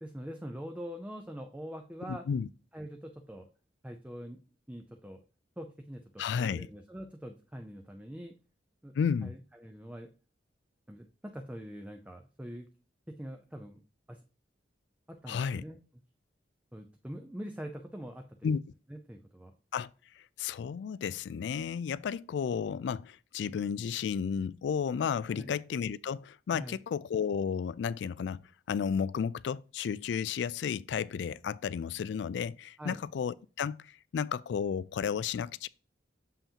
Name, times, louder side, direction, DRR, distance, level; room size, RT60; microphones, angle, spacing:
voice 1, 0.0-2.2 2.7-3.5 3.8-4.4 4.7-5.2 5.6-8.3 8.8-8.9 9.2-10.1 10.9-12.7 13.1-13.8 14.1-14.2 15.1-15.8 16.7-18.5 18.9-19.5 25.3-25.5 26.5-26.8 32.8-33.0, equal, 5° right, 0.5 m, -44 dB
voice 2, 2.1-2.5 6.2-6.7 9.0-9.3 15.3-15.6 18.4-18.6 19.7-19.9 20.2-28.4 28.7-35.7, left 7 dB, 70° left, 0.3 m, -33 dB
7.0 x 5.6 x 2.8 m
head